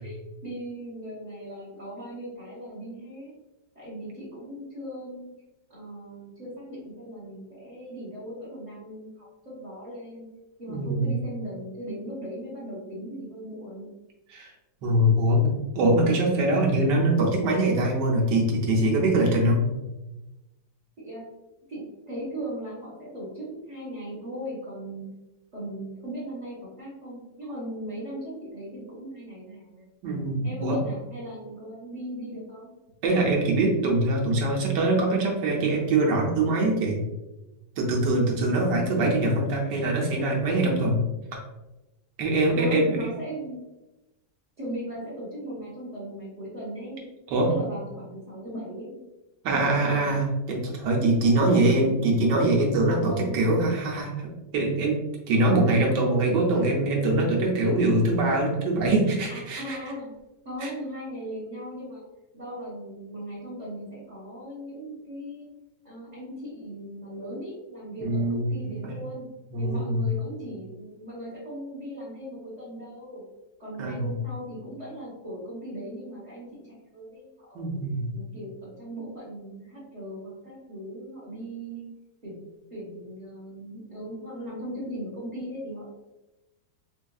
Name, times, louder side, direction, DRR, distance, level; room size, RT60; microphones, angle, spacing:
voice 1, 0.0-3.3 3.7-5.3 5.7-10.3 10.6-13.9 21.0-21.2 21.7-25.1 25.5-29.9 30.4-32.7 38.5-39.1 42.5-43.6 44.6-47.1 47.5-49.0 49.7-50.1 51.5-51.7 53.0-53.5 59.3-60.1 60.4-62.0 62.3-65.5 65.8-69.3 69.6-73.2 73.6-77.7 78.1-81.9 82.2-82.4 82.7-85.8, equal, 30° right, -7 dB, 0.9 m, -38 dB
voice 2, 10.7-11.1 14.3-14.5 14.8-19.6 30.0-30.8 33.0-37.0 37.8-41.0 42.2-43.0 47.3-47.5 49.4-55.0 55.3-59.8 60.6-60.7 68.0-68.7 69.5-70.1 73.8-74.2 77.5-78.1, right 2 dB, 80° right, -1 dB, 1.4 m, -23 dB
4.5 x 2.6 x 2.3 m, 1.0 s
omnidirectional pair, 1.9 m